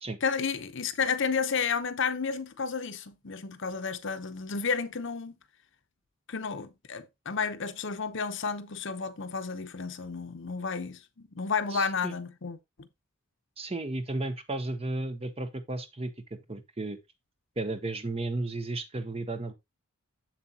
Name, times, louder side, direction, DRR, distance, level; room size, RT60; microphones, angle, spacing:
voice 1, 0.2-5.4 6.3-12.9, left 5 dB, 55° left, 0.8 m, -32 dB
voice 2, 11.7-12.1 13.6-17.0 17.6-19.5, right 2 dB, 25° right, 0.8 m, -34 dB
7.5 x 7.3 x 2.8 m
head